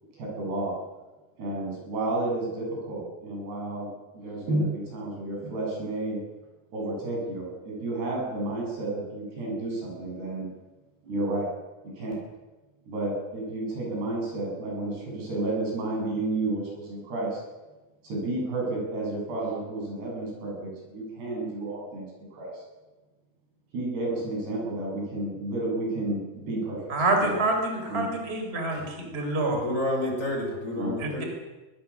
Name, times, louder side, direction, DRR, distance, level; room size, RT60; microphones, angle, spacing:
voice 1, 0.1-0.8 1.4-6.2 6.7-10.5 11.0-11.5 11.8-12.2 12.9-17.4 18.0-22.6 23.7-26.9 27.2-27.4 27.9-28.1 30.7-30.9, right 2 dB, 75° right, -2 dB, 10.0 m, -31 dB
voice 2, 26.9-29.6 31.0-31.2, right 2 dB, 15° right, 3 dB, 4.0 m, -27 dB
voice 3, 28.7-29.0 29.5-31.3, left 1 dB, 20° left, 1 dB, 4.9 m, -30 dB
23.5 x 20.0 x 7.3 m, 1.1 s
omnidirectional pair, 4.7 m